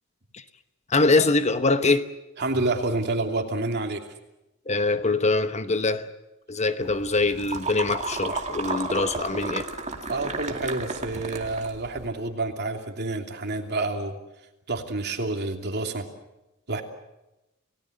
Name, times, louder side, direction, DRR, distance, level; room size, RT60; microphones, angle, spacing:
voice 1, 0.9-2.1 4.7-6.1 6.5-9.7, left 3 dB, 30° left, 10 dB, 1.0 m, -23 dB
voice 2, 2.4-4.1 10.1-14.2 14.7-16.1 16.7-16.8, right 2 dB, 50° right, 3 dB, 3.0 m, -28 dB
sound 1, 6.8-12.1, right 3 dB, 35° right, 2.1 m, -33 dB
29.0 x 18.0 x 8.0 m, 0.95 s
head